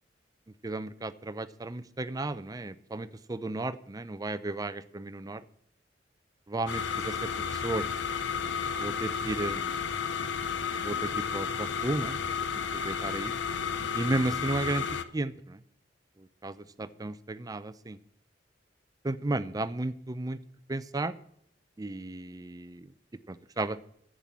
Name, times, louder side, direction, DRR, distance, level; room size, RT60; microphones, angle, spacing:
voice 1, 0.6-5.4 6.5-7.1 7.5-7.9 8.8-9.9 10.8-12.2 12.7-13.3 13.9-15.6 16.4-18.0 19.0-20.4 20.7-21.1 21.8-22.9 23.3-23.8, right 2 dB, 20° right, 13 dB, 0.5 m, -34 dB
sound 1, 6.7-15.0, left 6 dB, 85° left, 0.7 m, -32 dB
10.5 x 7.5 x 7.3 m, 0.68 s
head